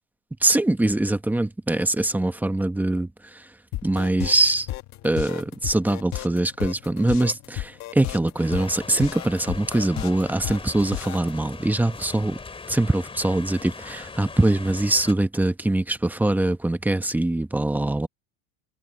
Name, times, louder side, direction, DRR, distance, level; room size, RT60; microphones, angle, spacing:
voice 1, 0.4-3.1 3.8-4.7 5.0-12.4 12.7-18.1, right 2 dB, 5° right, 1.0 m, -23 dB
sound 1, 3.7-11.3, left 15 dB, 45° left, 1.4 m, -33 dB
sound 2, 8.4-15.1, left 4 dB, 15° left, 3.1 m, -40 dB
supercardioid pair, 140°, 40 cm